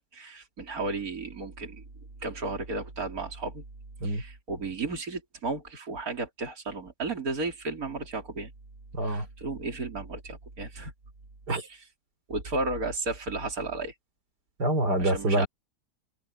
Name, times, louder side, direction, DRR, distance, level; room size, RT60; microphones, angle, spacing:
voice 1, 0.0-1.8 2.2-3.6 4.0-8.5 9.0-10.9 11.7-11.8 12.3-13.9 15.0-15.5, right 3 dB, 60° right, 3.8 m, -34 dB
voice 2, 8.9-9.3 11.5-11.7 14.6-15.5, right 1 dB, 90° right, 4.7 m, -26 dB
omnidirectional pair, 1.7 m